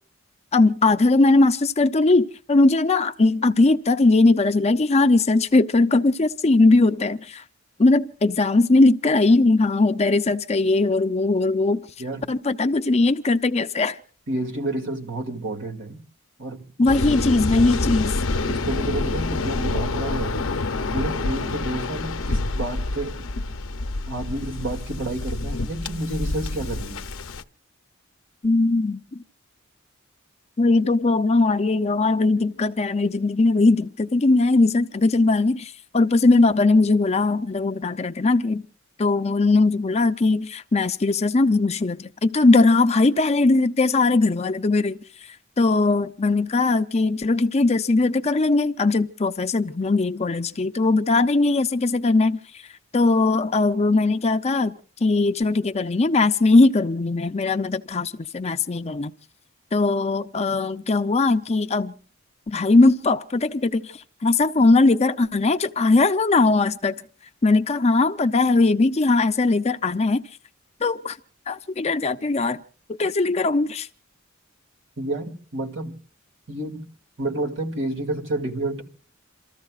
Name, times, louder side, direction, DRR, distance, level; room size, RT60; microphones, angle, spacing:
voice 1, 0.5-7.4 7.8-11.8 12.3-14.0 16.8-18.1 28.4-29.2 30.6-38.6 39.0-45.0 45.6-52.4 52.9-54.7 55.0-59.1 59.7-61.9 62.5-63.9 64.2-66.9 67.4-70.2 70.8-71.2 71.5-72.6 73.0-73.9, left 3 dB, 30° left, 0.6 m, -20 dB
voice 2, 12.0-12.3 14.3-16.0 16.4-16.9 18.5-20.5 20.9-23.2 24.1-27.0 75.0-76.0 76.5-76.8 77.2-78.8, right 2 dB, 65° right, 2.3 m, -30 dB
Waves surf, 16.9-27.4, left 2 dB, 75° left, 0.7 m, -27 dB
28.5 x 14.0 x 2.4 m
head